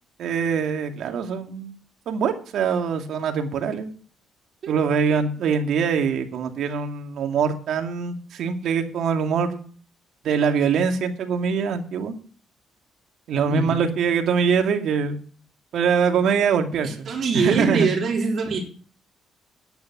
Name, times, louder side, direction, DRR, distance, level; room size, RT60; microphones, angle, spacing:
voice 1, 0.2-1.7 2.1-3.9 4.7-9.6 10.2-12.1 13.3-15.2 15.7-17.9, right 6 dB, 75° right, 6 dB, 2.2 m, -23 dB
voice 2, 13.5-13.9 16.8-18.6, right 5 dB, 55° right, 1 dB, 3.7 m, -24 dB
10.5 x 9.3 x 6.0 m, 0.43 s
cardioid pair, 90°, 0 cm